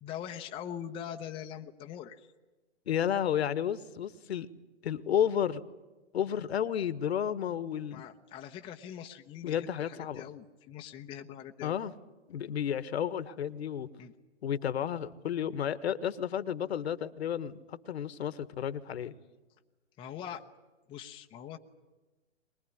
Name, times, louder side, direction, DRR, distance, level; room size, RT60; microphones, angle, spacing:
voice 1, 0.0-2.3 7.9-11.8 14.0-14.1 20.0-20.4 20.9-21.6, left 9 dB, 15° left, 4 dB, 0.8 m, -42 dB
voice 2, 2.9-4.5 4.8-5.6 6.1-8.0 9.4-10.2 11.6-11.9 12.3-13.9 14.4-19.1, left 9 dB, 60° left, 15 dB, 1.4 m, -32 dB
23.5 x 20.5 x 9.9 m, 1.2 s
hypercardioid pair, 135°, 35 cm